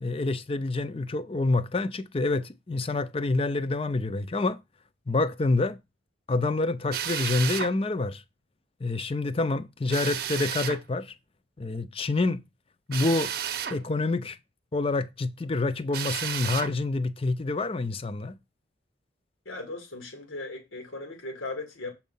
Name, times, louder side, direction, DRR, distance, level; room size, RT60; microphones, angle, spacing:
voice 1, 0.0-4.6 5.1-5.8 6.3-8.2 8.8-11.1 11.6-12.4 12.9-13.3 13.7-14.4 14.7-18.4, left 3 dB, 30° left, 0.5 m, -27 dB
Drill, 6.9-7.7 9.9-10.8 12.9-13.8 15.9-16.7, right 9 dB, 50° right, 0.7 m, -32 dB
voice 2, 19.5-21.9, left 2 dB, 90° left, 2.3 m, -37 dB
7.3 x 4.6 x 5.4 m
head